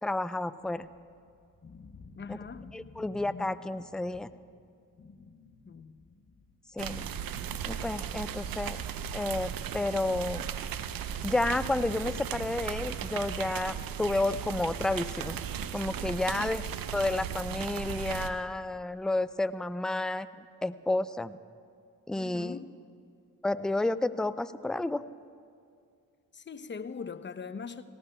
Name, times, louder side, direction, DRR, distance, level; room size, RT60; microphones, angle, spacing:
voice 1, 0.0-0.9 2.3-2.4 2.7-4.3 6.7-7.1 7.6-8.8 9.1-10.5 11.2-15.4 15.7-16.6 16.9-20.3 20.6-21.4 22.1-22.6 23.4-25.0, left 2 dB, ahead, 0.3 m, -31 dB
sound 1, 0.6-4.5 4.9-7.8, left 4 dB, 45° left, 3.0 m, -52 dB
voice 2, 2.2-2.7 5.7-5.9 16.3-16.5 22.2-22.7 26.3-27.8, left 5 dB, 30° left, 0.7 m, -41 dB
sound 2, 6.8-18.3, right 8 dB, 60° right, 0.7 m, -36 dB
18.5 x 18.0 x 2.2 m
hypercardioid pair, 45°, 39 cm